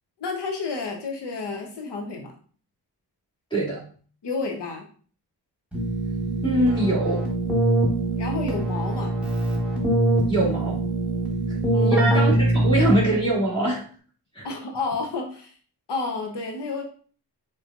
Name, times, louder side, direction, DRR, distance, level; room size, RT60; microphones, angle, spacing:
voice 1, 0.2-2.3 4.2-4.9 8.2-9.1 11.7-12.3 14.4-15.5 15.9-16.8, left 4 dB, 80° left, 2 dB, 0.9 m, -30 dB
voice 2, 3.5-3.8 6.4-7.3 10.3-10.8 11.8-13.8 14.3-14.5, right 1 dB, 10° left, -6 dB, 2.4 m, -23 dB
Keyboard (musical), 5.7-13.3, right 1 dB, 5° right, 1.2 m, -23 dB
5.1 x 4.2 x 2.4 m, 0.43 s
wide cardioid pair, 150°, 41 cm